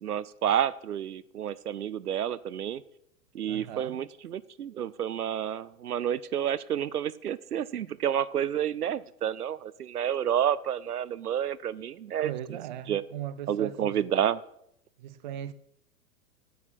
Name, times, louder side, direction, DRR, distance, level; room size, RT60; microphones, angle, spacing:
voice 1, 0.0-2.8 3.3-12.3 12.9-13.0 13.5-14.4, right 9 dB, 80° right, 0.5 m, -30 dB
voice 2, 3.5-4.0 12.2-14.0 15.0-15.5, right 11 dB, 35° right, 0.4 m, -38 dB
9.2 x 8.2 x 4.2 m
figure-of-eight pair, 105°, 45 cm